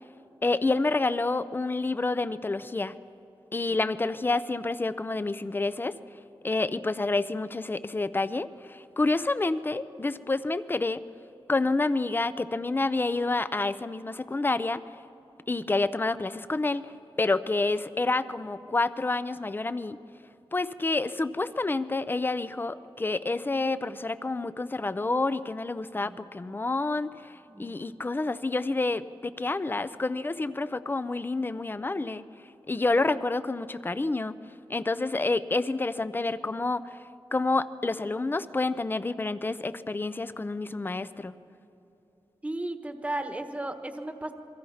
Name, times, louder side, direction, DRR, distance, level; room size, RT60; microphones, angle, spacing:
voice 1, 0.4-2.9 3.5-6.0 6.4-11.0 11.5-14.8 15.5-16.8 17.2-20.0 20.5-32.2 32.7-34.3 34.7-37.0 37.3-41.3, left 3 dB, 20° left, 14 dB, 0.5 m, -28 dB
voice 2, 42.4-44.3, right 1 dB, 15° right, 7 dB, 1.2 m, -35 dB
28.5 x 23.0 x 5.7 m, 2.9 s
wide cardioid pair, 165°, 10 cm